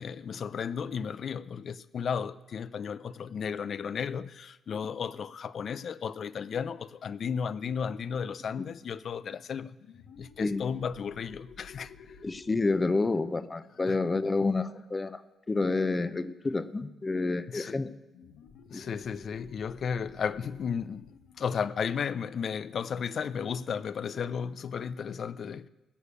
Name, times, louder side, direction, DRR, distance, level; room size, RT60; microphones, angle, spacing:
voice 1, 0.0-9.8 10.2-12.2 13.9-14.0 17.5-17.8 18.7-21.1 21.4-25.7, left 7 dB, 55° left, 0.5 m, -34 dB
sound 1, 9.8-15.1 18.1-23.4, left 5 dB, 75° left, 1.2 m, -54 dB
voice 2, 10.4-10.7 12.2-15.2 15.5-17.9 18.7-18.9, left 3 dB, 25° left, 0.8 m, -29 dB
16.5 x 6.5 x 8.5 m
cardioid pair, 90°, 0 cm